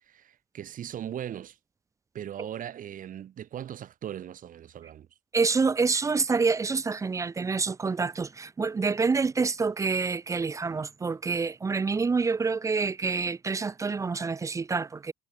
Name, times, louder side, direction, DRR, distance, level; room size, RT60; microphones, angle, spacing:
voice 1, 0.1-1.6 2.1-5.1, right 10 dB, 50° right, 1.9 m, -39 dB
voice 2, 5.3-15.1, right 4 dB, 20° right, 0.4 m, -27 dB
cardioid pair, 110°, 17 cm